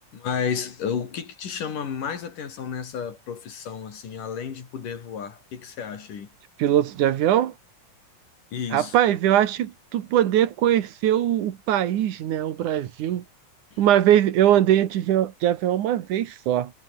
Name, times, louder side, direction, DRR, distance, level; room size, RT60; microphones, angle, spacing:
voice 1, 0.1-6.3 8.5-9.0 13.7-13.8, left 7 dB, 75° left, 4.8 m, -32 dB
voice 2, 6.6-7.5 8.7-13.2 13.8-16.7, right 11 dB, 70° right, 2.8 m, -21 dB
omnidirectional pair, 3.8 m